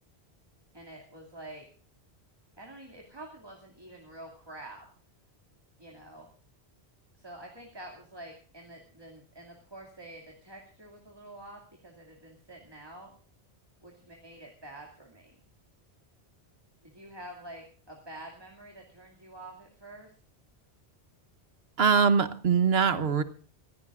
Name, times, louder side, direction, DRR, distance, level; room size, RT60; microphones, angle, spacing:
voice 1, 0.7-1.7 2.6-4.9 5.8-6.3 7.2-13.1 13.8-15.4 16.8-20.1, right 1 dB, 25° right, 0 dB, 2.5 m, -47 dB
voice 2, 21.8-23.2, right 6 dB, 70° right, 12 dB, 1.3 m, -23 dB
25.0 x 16.0 x 2.5 m, 0.42 s
omnidirectional pair, 1.1 m